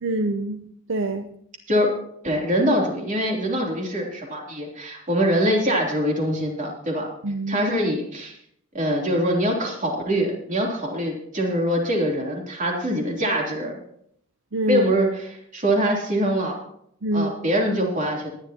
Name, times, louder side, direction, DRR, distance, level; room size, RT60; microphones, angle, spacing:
voice 1, 0.0-0.6 0.9-1.3 7.2-7.6 14.5-14.8 17.0-17.3, right 2 dB, 65° right, 7 dB, 0.8 m, -25 dB
voice 2, 2.2-7.1 7.5-8.4 8.7-13.7 14.7-15.3 15.5-16.5 17.1-18.3, equal, 35° right, -1 dB, 3.2 m, -23 dB
20.5 x 11.0 x 2.9 m, 0.69 s
head